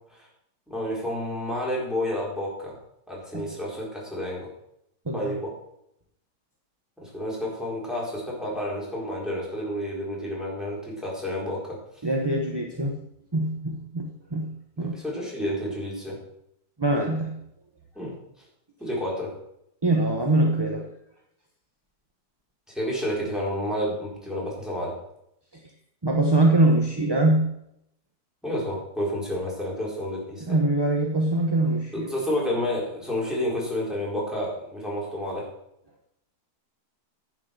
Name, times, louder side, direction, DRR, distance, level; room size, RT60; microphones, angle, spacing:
voice 1, 0.7-2.8 3.1-4.5 5.1-5.5 7.0-11.7 14.8-16.2 18.0-18.2 18.8-19.3 22.7-25.0 28.4-30.4 31.9-35.5, left 1 dB, ahead, -5 dB, 4.3 m, -30 dB
voice 2, 12.0-13.0 13.3-14.9 16.8-17.4 19.8-20.9 25.5-25.6 26.0-27.5 30.4-32.1, right 2 dB, 20° right, 1 dB, 0.8 m, -23 dB
10.5 x 7.5 x 6.6 m, 0.78 s
omnidirectional pair, 1.8 m